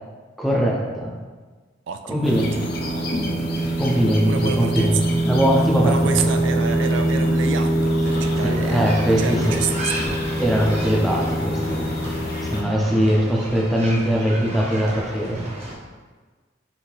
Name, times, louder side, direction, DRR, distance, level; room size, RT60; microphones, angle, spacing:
voice 1, 0.4-1.1 2.1-2.7 3.8-6.1 8.4-9.6 10.4-11.9 12.5-15.4, equal, ahead, -2 dB, 0.6 m, -21 dB
voice 2, 1.9-2.7 4.2-5.1 5.8-10.2, right 6 dB, 70° right, 6 dB, 0.3 m, -29 dB
sound 1, 2.2-12.6, right 1 dB, 55° left, 0.6 m, -23 dB
sound 2, 8.0-15.7, right 1 dB, 35° right, 1.0 m, -34 dB
5.8 x 2.7 x 3.3 m, 1.4 s
head